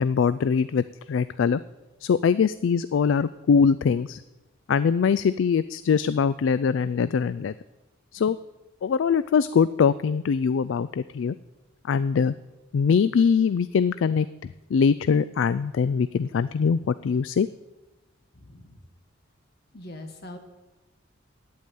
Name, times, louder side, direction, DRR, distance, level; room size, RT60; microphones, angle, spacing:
voice 1, 0.0-1.6 2.0-4.2 4.7-7.5 8.1-8.4 8.8-11.4 11.9-12.3 12.7-17.5, left 6 dB, 70° left, 15 dB, 0.3 m, -22 dB
voice 2, 18.3-18.8 19.7-20.4, left 1 dB, 55° left, 4 dB, 1.8 m, -42 dB
9.0 x 8.5 x 9.3 m, 1.1 s
head